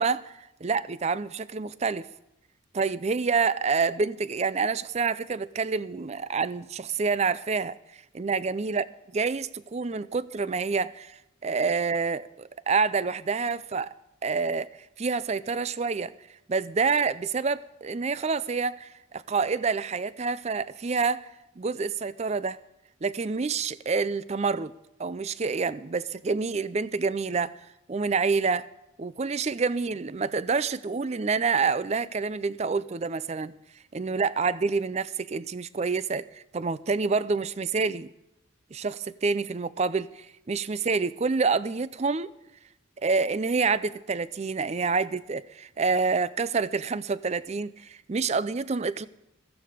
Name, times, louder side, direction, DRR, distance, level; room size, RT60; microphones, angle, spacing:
voice 1, 0.0-2.1 2.7-7.7 8.1-8.9 9.1-13.9 14.2-14.7 15.0-16.1 16.5-21.3 21.6-22.6 23.0-24.7 25.0-27.6 27.9-28.7 29.0-33.5 33.9-38.1 38.7-42.3 43.0-49.1, right 4 dB, 30° right, 0.4 m, -27 dB
16.0 x 14.0 x 5.0 m
head